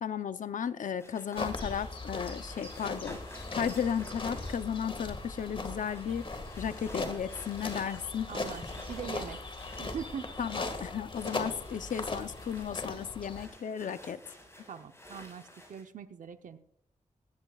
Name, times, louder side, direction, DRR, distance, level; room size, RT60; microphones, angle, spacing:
voice 1, 0.0-3.2 3.5-6.3 6.6-8.3 10.4-14.2 14.6-14.7, left 8 dB, 85° left, 12 dB, 0.7 m, -34 dB
sound 1, 1.0-10.8 11.1-15.8, equal, 20° left, 6.2 m, -52 dB
sound 2, 1.4-13.5, left 2 dB, 40° left, 1.9 m, -39 dB
voice 2, 8.3-9.4 9.8-10.3 14.7-16.6, right 7 dB, 85° right, 8 dB, 0.8 m, -42 dB
19.0 x 15.5 x 2.4 m, 0.70 s
wide cardioid pair, 100°, 13 cm